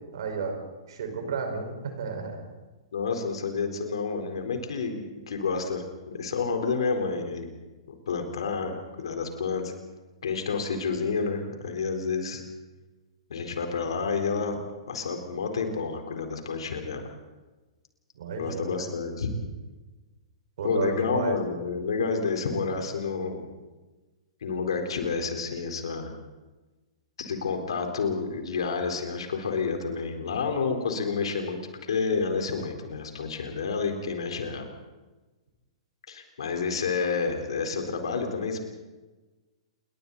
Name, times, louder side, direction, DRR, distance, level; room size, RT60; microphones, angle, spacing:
voice 1, 0.1-0.6 0.9-2.4 18.2-18.7 20.6-21.4, right 4 dB, 60° right, 4 dB, 5.1 m, -32 dB
voice 2, 2.9-7.5 7.9-9.7 10.2-12.4 13.3-14.6 14.9-17.0 18.4-19.3 20.6-23.5 24.4-26.1 27.2-31.6 31.9-34.7 36.1-38.6, left 5 dB, 65° left, 4 dB, 4.1 m, -29 dB
29.0 x 22.5 x 4.1 m, 1.2 s
figure-of-eight pair, 110°, 3 cm